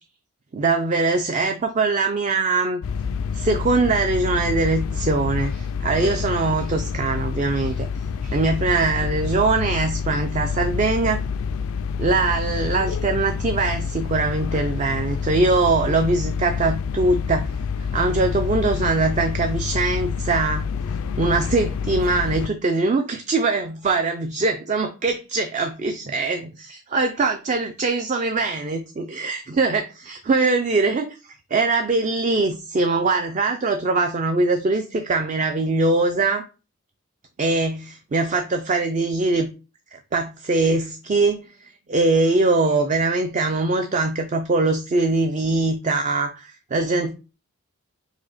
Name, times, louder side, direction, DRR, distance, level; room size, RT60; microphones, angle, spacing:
voice 1, 0.5-2.8 3.3-7.9 8.2-11.2 12.0-17.5 17.8-20.7 21.2-29.8 30.1-36.5 37.4-39.5 39.9-47.1, right 3 dB, 35° right, 0.4 m, -22 dB
sound 1, 2.8-22.5, left 6 dB, 70° left, 0.3 m, -27 dB
5.0 x 2.1 x 4.0 m
head